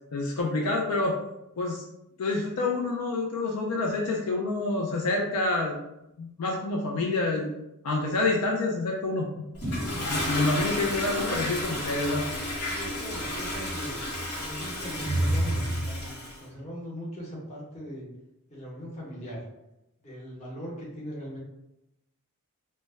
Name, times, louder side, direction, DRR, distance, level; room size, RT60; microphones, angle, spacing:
voice 1, 0.1-1.1 1.6-1.8 2.2-5.8 6.2-7.5 7.8-9.2 10.0-12.2, left 2 dB, 85° left, -1 dB, 0.4 m, -27 dB
Toilet flush, 9.6-16.4, equal, 70° left, 1.1 m, -30 dB
voice 2, 10.9-11.4 12.7-13.9 14.4-18.1 18.5-19.4 20.0-21.4, equal, 30° left, -6 dB, 0.9 m, -40 dB
2.1 x 2.0 x 3.3 m, 0.88 s
head